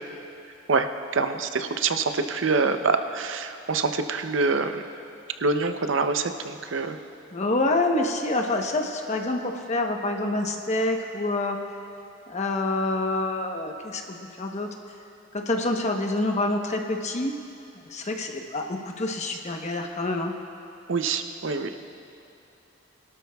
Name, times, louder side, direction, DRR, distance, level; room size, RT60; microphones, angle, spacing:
voice 1, 1.1-4.7 5.4-7.0 20.9-21.7, right 4 dB, 75° right, 8 dB, 0.6 m, -25 dB
voice 2, 7.3-11.6 12.3-14.7 15.3-17.3 17.9-20.3, left 2 dB, 35° left, 3 dB, 1.0 m, -27 dB
22.5 x 12.5 x 2.3 m, 2.8 s
head